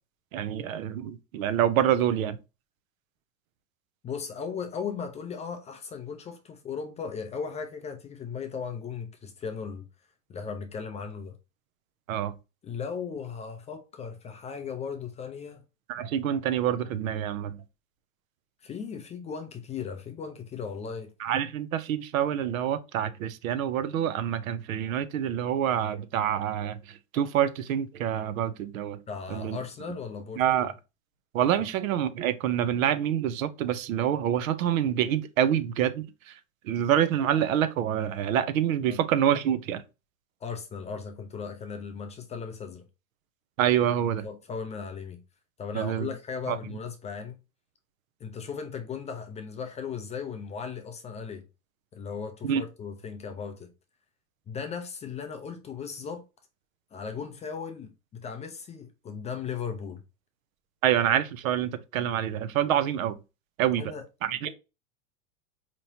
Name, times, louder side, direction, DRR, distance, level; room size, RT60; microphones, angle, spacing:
voice 1, 0.3-2.4 12.1-12.3 15.9-17.6 21.2-29.0 29.3-29.6 30.4-30.7 31.3-36.3 36.6-39.8 43.6-44.3 45.7-46.1 46.5-46.6 52.4-52.6 60.8-63.1 63.6-63.8 64.2-64.5, right 10 dB, 75° right, 0.7 m, -26 dB
voice 2, 4.0-9.9 10.3-11.4 12.6-15.6 18.6-21.1 29.1-30.7 31.6-31.7 38.9-39.0 40.4-42.8 44.2-45.2 45.6-47.4 48.2-51.4 51.9-53.7 54.5-56.2 56.9-60.0 63.8-64.0, left 6 dB, 15° left, 0.4 m, -37 dB
4.3 x 3.0 x 2.7 m
hypercardioid pair, 110°, 41 cm